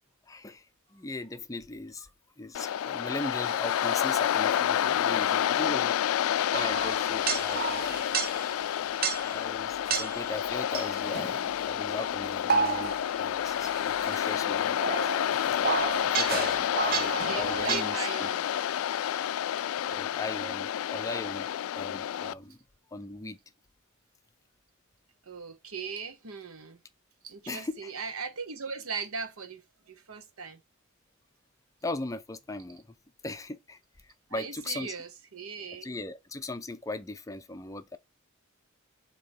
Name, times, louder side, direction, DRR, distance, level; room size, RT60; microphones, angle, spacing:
voice 1, 0.3-2.1 2.4-6.0 6.5-8.1 9.3-15.0 16.0-18.3 19.9-22.6 22.9-23.4 27.5-27.9 31.8-32.9 33.2-34.9 35.8-38.0, left 2 dB, 15° left, 0.5 m, -38 dB
Waves surf, 2.5-22.3, left 10 dB, 75° left, 0.3 m, -29 dB
sound 1, 6.5-8.5 9.0-9.4 9.9-10.3 10.7-11.5 12.2-13.2 13.5-17.8, right 6 dB, 45° right, 0.6 m, -31 dB
voice 2, 17.0-18.4 25.2-26.8 27.2-30.6 34.3-35.9, right 5 dB, 85° right, 1.1 m, -38 dB
7.2 x 2.9 x 4.8 m
head